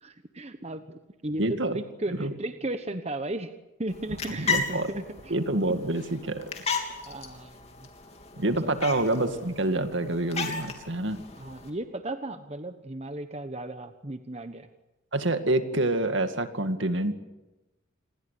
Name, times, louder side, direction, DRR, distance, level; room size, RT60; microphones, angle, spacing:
voice 1, 0.0-3.5 3.8-5.3 7.1-7.9 8.6-8.8 11.4-14.7, right 1 dB, 30° right, 9 dB, 1.1 m, -35 dB
voice 2, 1.4-1.7 2.2-2.3 4.3-4.9 5.3-6.5 8.4-11.2 15.1-17.1, right 2 dB, 70° right, 8 dB, 2.2 m, -27 dB
sound 1, 3.9-11.7, left 4 dB, 30° left, 3.3 m, -35 dB
27.5 x 21.5 x 8.5 m, 1.0 s
head